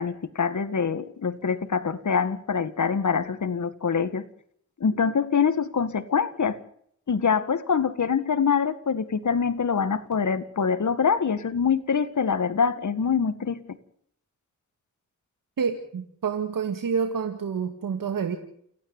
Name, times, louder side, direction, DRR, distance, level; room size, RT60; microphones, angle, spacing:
voice 1, 0.0-4.2 4.8-6.6 7.1-13.6, left 6 dB, 60° left, 10 dB, 1.9 m, -24 dB
voice 2, 15.6-18.4, right 6 dB, 85° right, 7 dB, 2.1 m, -28 dB
29.5 x 10.0 x 9.6 m, 0.65 s
cardioid pair, 55°, 32 cm